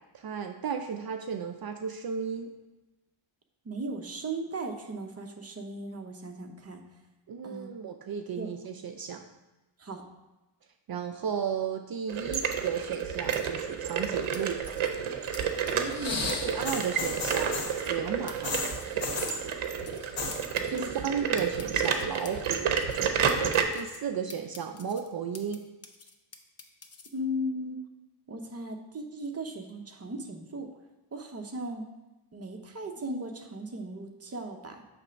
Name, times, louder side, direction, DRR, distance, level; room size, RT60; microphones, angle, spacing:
voice 1, 0.1-2.5 7.3-9.2 10.9-14.6 16.4-18.6 20.7-22.8 23.7-25.6, right 7 dB, 50° right, 5 dB, 0.5 m, -34 dB
voice 2, 3.6-6.8 7.4-7.7 8.4-8.5 9.8-10.0 15.7-16.3 20.7-20.9 27.1-27.8 28.3-30.7 31.1-31.9 32.3-34.8, right 1 dB, 30° right, 4 dB, 0.9 m, -37 dB
sound 1, 12.1-23.6, right 7 dB, 75° right, 0.8 m, -30 dB
sound 2, 12.3-12.4 13.3-13.4 14.3-14.9 15.3-15.4 15.7-15.9 16.3-16.4 16.6-16.9 17.3-17.4 17.6-18.0 18.3-18.4 18.6-18.9 19.3-19.4 19.6-20.1 20.3-20.9 21.4-23.0 23.3-24.0 24.3-25.6 25.8-27.1, left 4 dB, 30° left, 0.7 m, -47 dB
sound 3, 15.9-17.8 18.4-19.4 20.0-20.4 20.7-21.2 21.5-22.3 23.1-23.2, left 4 dB, 80° left, 1.3 m, -34 dB
7.1 x 3.3 x 5.1 m, 1.1 s
cardioid pair, 90°, 49 cm